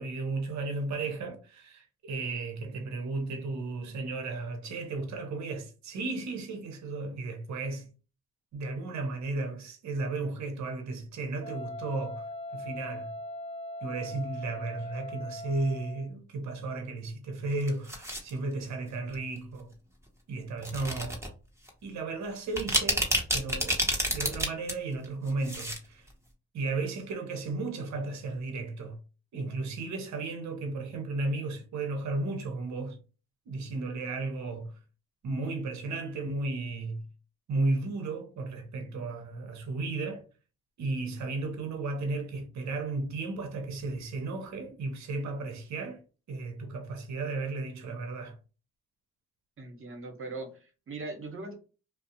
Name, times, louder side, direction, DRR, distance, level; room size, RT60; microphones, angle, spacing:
voice 1, 0.0-7.9 8.5-13.1 13.8-19.7 20.3-21.2 21.8-23.1 23.3-26.1 26.5-29.0 29.3-33.0 33.5-34.8 35.2-37.0 37.5-40.2 40.8-46.0 46.3-48.4, right 3 dB, 65° right, 0.7 m, -34 dB
Wind instrument woodwind instrument, 11.4-16.1, left 1 dB, 20° left, 0.8 m, -40 dB
sound 1, 17.5-18.3 19.1-19.4 20.6-21.3 21.7-21.8 22.4-24.7 25.0-25.8 26.1-26.2, right 1 dB, 10° right, 0.8 m, -29 dB
voice 2, 49.6-51.5, right 3 dB, 45° right, 1.0 m, -40 dB
2.4 x 2.0 x 2.7 m
supercardioid pair, 55°, 31 cm